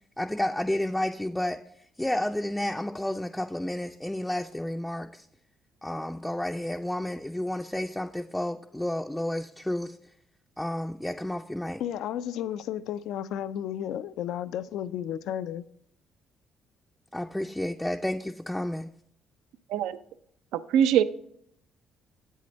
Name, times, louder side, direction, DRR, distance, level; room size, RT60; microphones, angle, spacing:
voice 1, 0.2-1.6 2.0-5.3 5.8-10.0 10.6-11.8 17.1-18.9, left 1 dB, 10° left, 0.4 m, -31 dB
voice 2, 11.8-15.6, left 10 dB, 75° left, 0.3 m, -33 dB
voice 3, 20.5-21.0, right 9 dB, 80° right, 0.4 m, -22 dB
7.6 x 6.4 x 4.0 m
supercardioid pair, 70°, 0 cm